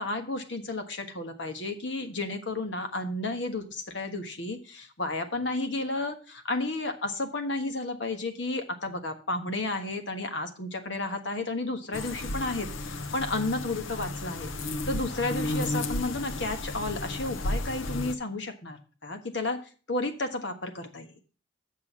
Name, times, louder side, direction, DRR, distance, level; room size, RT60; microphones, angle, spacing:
voice 1, 0.0-14.5 14.8-19.6 19.9-21.1, left 2 dB, 65° left, 6 dB, 1.4 m, -32 dB
sound 1, 11.9-18.1, left 2 dB, 90° left, 0.8 m, -33 dB
7.6 x 6.3 x 6.1 m, 0.38 s
head